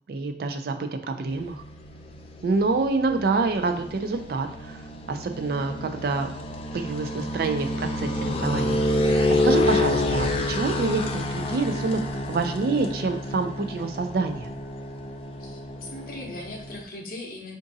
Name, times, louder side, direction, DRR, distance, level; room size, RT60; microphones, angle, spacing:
voice 1, 0.1-1.6 2.4-6.3 6.7-14.5, right 3 dB, 55° right, 7 dB, 0.3 m, -27 dB
sound 1, 1.3-16.8, left 1 dB, 30° left, 0.3 m, -28 dB
voice 2, 15.4-17.6, left 2 dB, 50° left, 1 dB, 0.7 m, -39 dB
4.7 x 2.5 x 2.6 m, 0.65 s
head